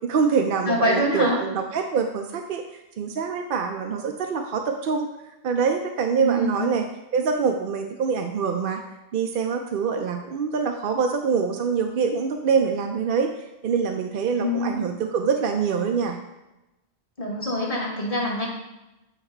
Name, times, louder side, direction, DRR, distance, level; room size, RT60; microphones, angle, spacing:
voice 1, 0.0-2.6 3.0-5.1 5.4-6.8 7.1-8.8 9.1-13.3 13.6-16.2, right 6 dB, 60° right, 4 dB, 0.7 m, -25 dB
voice 2, 0.7-1.4 6.2-6.7 14.4-14.8 17.2-18.5, equal, 35° left, -2 dB, 1.3 m, -24 dB
8.2 x 3.0 x 4.3 m, 0.97 s
omnidirectional pair, 1.2 m